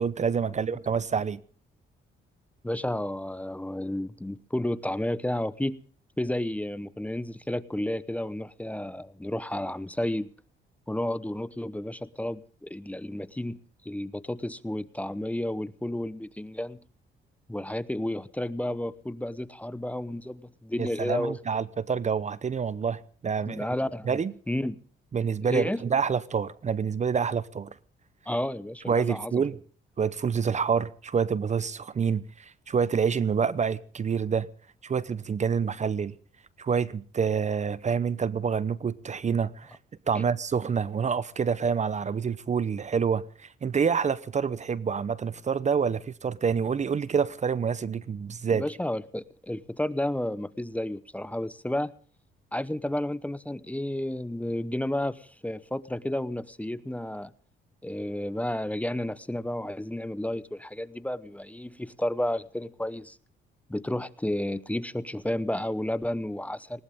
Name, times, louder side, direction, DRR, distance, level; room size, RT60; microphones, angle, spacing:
voice 1, 0.0-1.4 20.8-23.7 24.1-24.3 25.1-27.7 28.9-29.6 30.0-34.5 34.8-36.1 36.6-39.8 40.1-48.6, right 6 dB, 35° right, 0.8 m, -27 dB
voice 2, 2.6-5.8 6.2-10.3 10.9-13.6 13.8-16.8 17.5-21.4 23.5-24.2 24.5-24.8 25.4-25.8 28.3-29.4 40.1-40.2 48.5-51.9 52.5-57.3 57.8-63.2 63.7-66.8, left 1 dB, 5° left, 0.9 m, -31 dB
19.5 x 19.0 x 3.6 m
cardioid pair, 90°, 20 cm